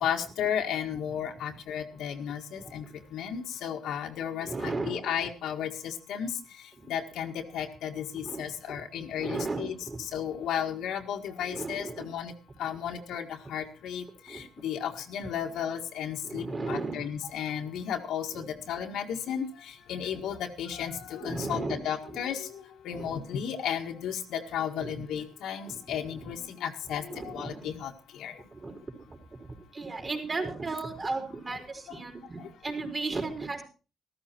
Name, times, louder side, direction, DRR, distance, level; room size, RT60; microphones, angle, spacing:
voice 1, 0.0-2.8 3.1-6.3 6.9-9.8 10.1-12.3 12.6-14.0 14.3-19.5 19.9-22.5 22.9-27.9 28.2-28.3, left 8 dB, 80° left, 4 dB, 1.8 m, -34 dB
voice 2, 4.4-5.1 6.8-6.9 8.2-8.4 9.2-10.0 11.5-12.1 14.3-14.4 16.2-17.0 21.2-21.8 22.9-23.1 24.8-24.9 27.1-27.7 28.5-28.7 29.7-33.6, right 3 dB, 30° right, 3 dB, 4.4 m, -35 dB
14.0 x 13.5 x 4.5 m, 0.35 s
cardioid pair, 90°, 0 cm